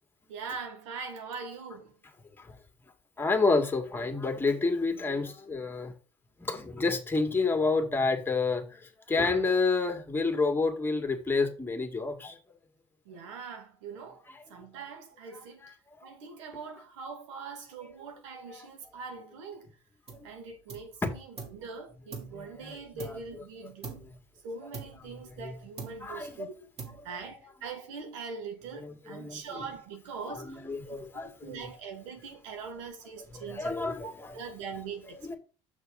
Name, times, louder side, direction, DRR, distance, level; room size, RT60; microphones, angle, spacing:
voice 1, 0.3-1.9 13.1-14.2 14.5-15.7 16.0-19.7 20.2-24.0 24.4-26.7 27.0-30.6 30.8-35.4, right 5 dB, 85° right, 1.7 m, -42 dB
voice 2, 3.2-5.9 6.4-8.8 9.1-12.4 14.3-14.4 18.5-18.7 20.1-20.3 21.0-21.1 22.2-23.2 23.6-24.0 25.0-25.5 26.0-26.5 28.7-29.7 30.3-31.7 33.3-34.4 35.2-35.4, left 3 dB, 15° left, 1.9 m, -30 dB
sound 1, 20.1-20.4 20.7-21.7 22.1-23.5 23.8-24.2 24.7-25.5 25.8-26.3 26.8-27.3, right 5 dB, 40° right, 2.8 m, -44 dB
6.3 x 6.1 x 3.8 m
supercardioid pair, 85°, 16 cm